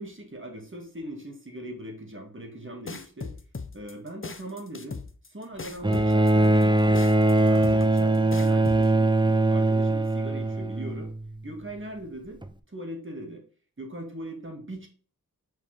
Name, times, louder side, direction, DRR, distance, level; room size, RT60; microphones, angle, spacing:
voice 1, 0.0-3.3 3.7-5.0 5.3-7.1 7.4-11.1 11.4-12.4 12.7-13.4 13.8-14.9, right 1 dB, 35° right, 2 dB, 2.4 m, -40 dB
sound 1, 2.9-8.9, left 4 dB, 35° left, 0.9 m, -38 dB
Bowed string instrument, 5.8-11.3 12.4-12.5, right 1 dB, 15° right, 0.7 m, -21 dB
6.5 x 4.9 x 3.7 m, 0.40 s
wide cardioid pair, 45°, 36 cm